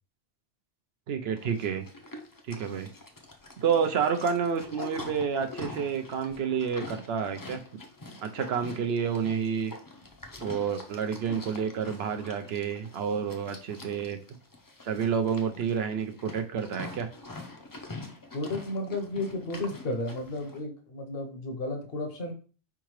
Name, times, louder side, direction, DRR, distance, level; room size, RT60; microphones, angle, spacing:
voice 1, 1.1-1.9 2.5-2.9 3.6-7.6 8.2-9.7 10.4-14.2 14.8-17.1, right 7 dB, 65° right, 8 dB, 0.8 m, -29 dB
Livestock farm animals working animals, 1.4-20.6, left 2 dB, 25° left, 0.4 m, -45 dB
voice 2, 18.3-22.3, left 2 dB, 55° left, 4 dB, 1.0 m, -33 dB
4.7 x 3.7 x 3.1 m, 0.40 s
omnidirectional pair, 1.2 m